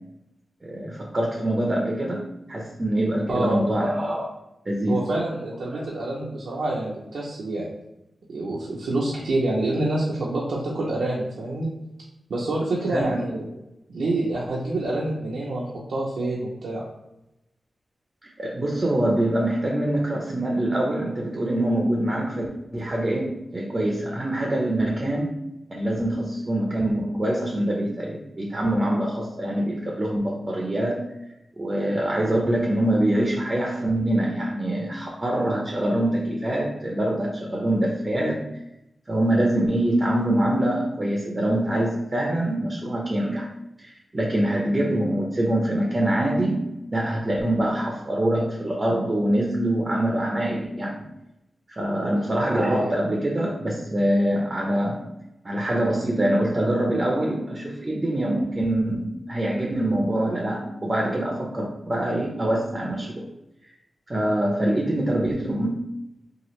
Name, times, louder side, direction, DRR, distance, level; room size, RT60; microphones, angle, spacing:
voice 1, 0.6-4.3 4.7-5.0 5.7-5.8 12.9-13.2 18.2-22.5 22.7-25.3 25.7-31.0 31.6-38.4 39.1-43.5 43.8-46.6 46.9-51.0 51.7-55.0 55.4-63.3 64.1-65.7, right 1 dB, 35° right, -1 dB, 0.6 m, -24 dB
voice 2, 3.3-3.6 4.9-7.7 8.3-11.7 12.3-13.5 13.9-16.8 52.0-52.2, right 2 dB, 80° right, -5 dB, 0.5 m, -27 dB
2.9 x 2.4 x 3.0 m, 0.88 s
cardioid pair, 45°, 0 cm